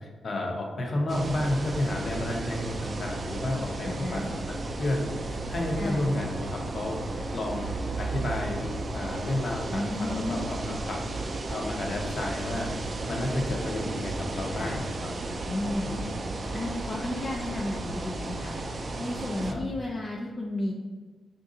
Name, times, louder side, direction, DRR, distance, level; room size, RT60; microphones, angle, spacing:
voice 1, 0.0-7.0 7.3-7.7 8.0-11.0 11.5-12.7 13.1-14.9 15.8-16.2 19.5-19.6, left 1 dB, 50° left, 0 dB, 0.8 m, -31 dB
sound 1, 1.1-19.5, right 2 dB, 40° right, 0.4 m, -34 dB
voice 2, 3.8-4.3 5.7-6.1 9.7-10.5 14.5-14.9 15.4-15.9 16.5-18.6 19.0-20.7, left 1 dB, 35° left, -2 dB, 0.5 m, -33 dB
4.5 x 2.6 x 3.8 m, 1.4 s
cardioid pair, 80°, 0 cm